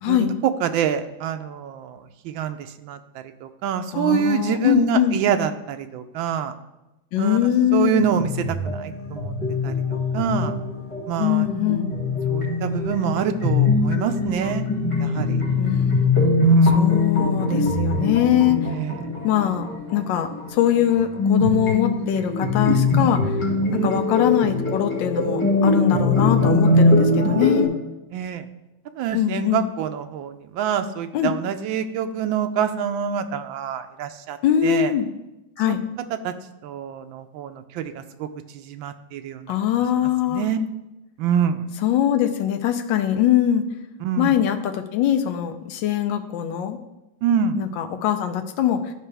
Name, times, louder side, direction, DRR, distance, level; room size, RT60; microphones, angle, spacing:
voice 1, 0.0-6.5 7.2-8.3 8.6-9.3 9.6-10.6 11.1-11.5 12.3-14.7 15.0-15.4 16.4-16.9 18.6-19.1 23.7-24.0 28.1-28.5 28.9-34.4 34.6-34.9 36.2-36.3 36.6-38.3 38.5-39.5 40.3-40.6 41.2-41.7 44.0-44.3 47.2-47.6, right 8 dB, 80° right, 9 dB, 1.3 m, -26 dB
voice 2, 3.9-5.2 7.1-8.2 11.2-11.9 15.6-16.1 16.7-18.7 19.2-23.4 23.7-27.7 29.1-29.7 31.1-31.3 34.4-35.1 35.6-35.8 39.5-40.5 41.8-43.7 44.2-46.8 47.6-48.9, left 11 dB, 75° left, 6 dB, 1.3 m, -22 dB
sound 1, 7.9-27.7, left 2 dB, 15° left, 2.2 m, -22 dB
12.0 x 5.0 x 3.4 m, 0.97 s
omnidirectional pair, 2.1 m